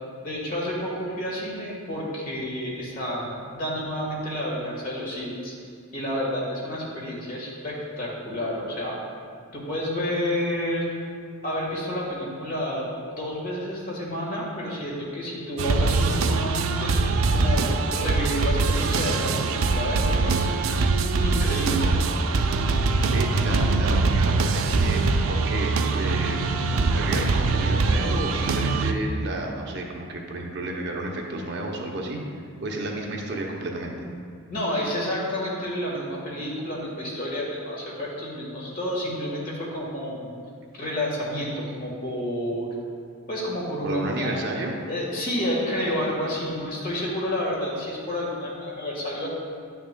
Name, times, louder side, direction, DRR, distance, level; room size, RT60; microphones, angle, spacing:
voice 1, 0.2-5.5 5.9-8.9 9.5-10.8 11.4-12.9 13.1-20.9 21.2-21.9 34.5-40.3 40.7-42.7 43.3-44.4 44.9-49.3, left 1 dB, 45° left, -4 dB, 1.5 m, -30 dB
sound 1, 15.6-28.9, right 3 dB, 75° right, 0.4 m, -23 dB
voice 2, 23.1-25.0 25.3-26.6 26.9-32.2 32.6-34.0 43.8-44.7, right 2 dB, 55° right, 0 dB, 0.7 m, -31 dB
9.8 x 5.9 x 2.2 m, 2.2 s
head